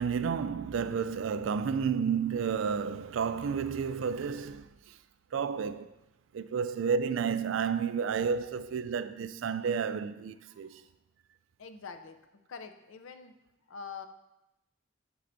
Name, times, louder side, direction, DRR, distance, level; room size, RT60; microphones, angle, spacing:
voice 1, 0.0-5.0 5.3-5.9 6.3-10.8, right 6 dB, 75° right, 0.3 m, -31 dB
voice 2, 10.5-10.8 11.6-13.4 13.7-14.1, left 5 dB, 85° left, 0.6 m, -45 dB
7.6 x 6.9 x 2.6 m
head